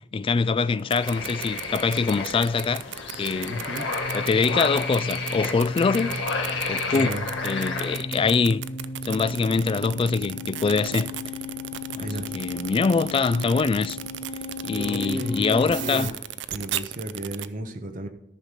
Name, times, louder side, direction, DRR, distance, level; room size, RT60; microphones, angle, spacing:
voice 1, 0.1-2.8 3.2-3.6 4.1-6.1 6.7-7.1 7.4-8.6 9.0-11.1 11.9-12.1 12.3-14.0 14.6-16.1, left 4 dB, 30° left, 0.3 m, -24 dB
sound 1, 0.8-17.5, right 12 dB, 70° right, 0.5 m, -34 dB
sound 2, 1.0-8.0, left 3 dB, 75° left, 1.7 m, -31 dB
sound 3, 3.4-16.1, left 3 dB, 50° left, 0.9 m, -36 dB
voice 2, 3.5-3.9 6.9-7.2 12.0-12.3 14.7-16.1 16.5-18.1, right 1 dB, 45° right, 1.1 m, -33 dB
14.0 x 5.7 x 5.0 m
head